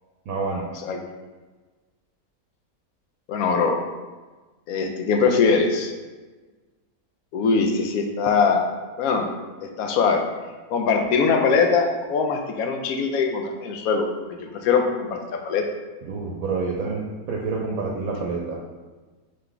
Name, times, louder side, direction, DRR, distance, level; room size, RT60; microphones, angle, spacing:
voice 1, 0.3-0.6 16.1-18.6, right 4 dB, 70° right, -1 dB, 1.0 m, -28 dB
voice 2, 3.3-3.8 4.7-5.9 7.3-8.6 9.0-9.3 9.6-10.2 10.7-14.1 14.4-15.6, left 5 dB, 75° left, 3 dB, 1.0 m, -22 dB
3.8 x 3.2 x 3.4 m, 1.3 s
omnidirectional pair, 1.6 m